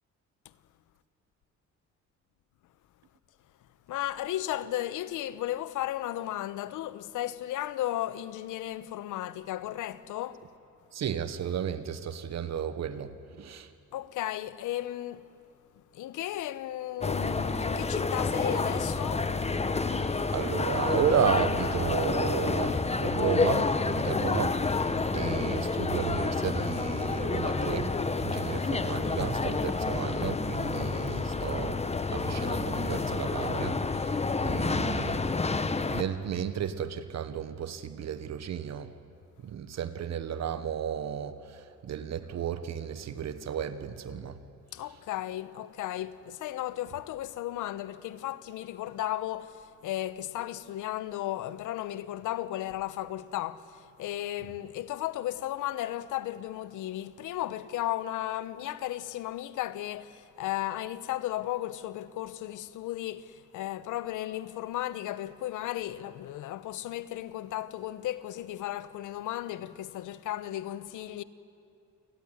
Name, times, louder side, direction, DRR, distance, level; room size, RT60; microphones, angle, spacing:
voice 1, 3.9-10.4 13.9-15.3 15.9-19.3 20.0-20.3 44.7-71.2, left 13 dB, 85° left, 1.0 m, -35 dB
voice 2, 10.9-13.1 13.4-13.7 20.3-27.9 28.2-31.8 32.1-34.1 34.4-35.2 35.9-38.9 39.4-44.3, right 8 dB, 60° right, 1.3 m, -33 dB
sound 1, 17.0-36.0, left 3 dB, 20° left, 1.1 m, -29 dB
29.0 x 18.0 x 9.7 m
cardioid pair, 90°, 30 cm